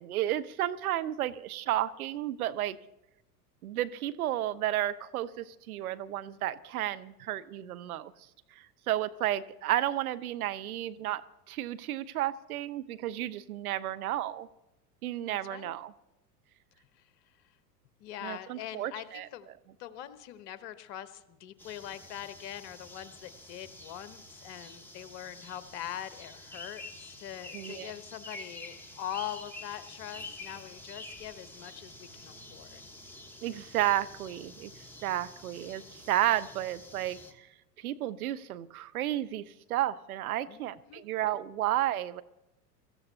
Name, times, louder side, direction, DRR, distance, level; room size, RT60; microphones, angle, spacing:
voice 1, 0.0-2.8 3.6-8.1 8.9-11.2 11.5-14.5 15.0-15.9 18.2-19.3 27.5-27.9 33.4-34.7 35.0-37.5 37.8-39.4 39.7-42.2, right 13 dB, 60° right, 12 dB, 0.8 m, -32 dB
voice 2, 15.3-15.8 18.0-19.5 19.8-32.8 40.5-41.0, left 11 dB, 45° left, 12 dB, 1.1 m, -43 dB
sound 1, 21.6-37.3, left 1 dB, 5° left, 1.3 m, -48 dB
24.0 x 14.0 x 2.8 m, 0.90 s
figure-of-eight pair, 85°, 49 cm